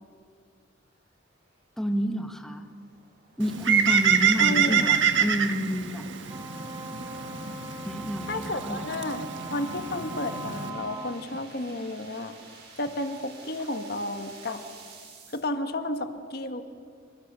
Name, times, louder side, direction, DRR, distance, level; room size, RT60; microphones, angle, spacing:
sound 1, 1.5-15.4, right 4 dB, 55° right, 7.6 m, -52 dB
voice 1, 1.8-2.7 3.4-6.1 7.8-8.9, equal, ahead, 4 dB, 1.6 m, -29 dB
Bird, 3.4-10.7, right 7 dB, 70° right, 1.5 m, -26 dB
voice 2, 4.4-5.0 8.2-9.2 9.5-12.3 12.8-14.6 15.3-16.6, left 1 dB, 50° left, 7 dB, 1.4 m, -32 dB
Wind instrument woodwind instrument, 6.3-11.3, right 1 dB, 20° right, 1.9 m, -40 dB
28.5 x 25.5 x 6.8 m, 2.2 s
head